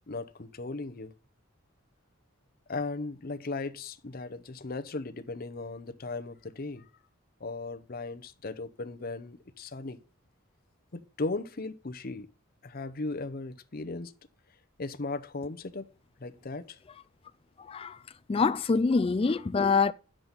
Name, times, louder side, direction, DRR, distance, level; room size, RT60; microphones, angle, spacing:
voice 1, 0.1-1.1 2.7-6.9 7.4-10.0 10.9-12.3 12.6-14.1 14.8-15.9 16.2-16.8 18.9-19.0, left 3 dB, 45° left, 0.8 m, -37 dB
voice 2, 17.7-18.0 18.3-19.9, left 4 dB, 30° left, 0.3 m, -25 dB
10.5 x 7.5 x 4.1 m
head